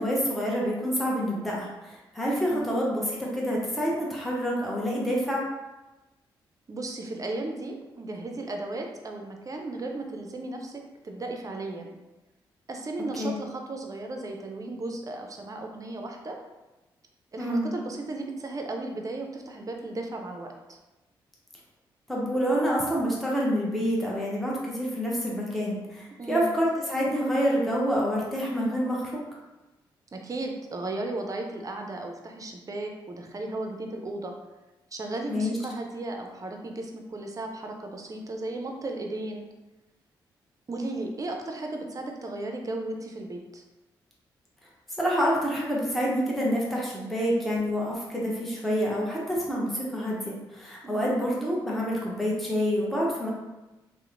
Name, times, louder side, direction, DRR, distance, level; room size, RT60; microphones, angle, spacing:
voice 1, 0.0-5.4 13.2-13.3 17.4-17.7 22.1-29.2 35.3-35.6 45.0-53.3, equal, ahead, -5 dB, 0.7 m, -27 dB
voice 2, 2.3-2.6 6.7-11.9 12.7-16.4 17.3-20.5 26.2-26.5 30.1-34.3 34.9-39.5 40.7-43.6 50.8-51.2, right 2 dB, 35° right, 3 dB, 0.5 m, -35 dB
2.8 x 2.0 x 2.5 m, 1.1 s
supercardioid pair, 45°, 10 cm